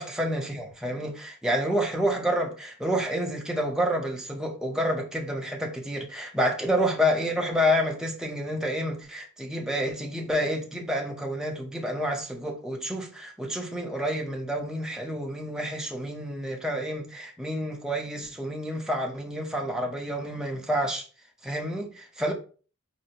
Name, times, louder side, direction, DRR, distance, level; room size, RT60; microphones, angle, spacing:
voice 1, 0.0-21.1 21.4-22.3, equal, 5° right, 0.5 m, -29 dB
4.1 x 2.4 x 2.7 m
head